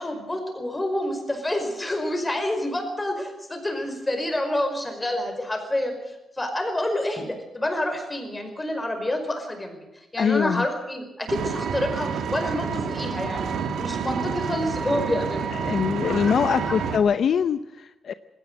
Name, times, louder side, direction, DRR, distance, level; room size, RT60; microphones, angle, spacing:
voice 1, 0.0-16.9, left 1 dB, 15° left, 5 dB, 5.2 m, -28 dB
voice 2, 10.2-10.7 15.6-18.1, left 7 dB, 60° left, 12 dB, 0.7 m, -23 dB
Vehicle, 11.3-17.0, right 6 dB, 80° right, 2.2 m, -29 dB
19.5 x 17.5 x 7.8 m, 0.97 s
wide cardioid pair, 130°, 0 cm